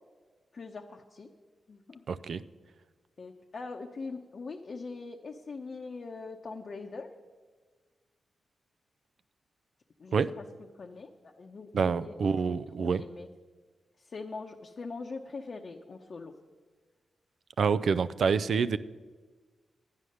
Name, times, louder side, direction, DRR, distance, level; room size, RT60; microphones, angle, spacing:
voice 1, 0.5-1.3 1.7-2.0 3.2-7.1 10.0-13.3 14.0-16.4, left 4 dB, 50° left, 1 dB, 0.8 m, -42 dB
voice 2, 2.1-2.4 10.1-10.3 11.7-13.0 17.6-18.8, right 5 dB, 70° right, 15 dB, 0.4 m, -27 dB
11.5 x 9.3 x 6.5 m, 1.4 s
cardioid pair, 90°, 0 cm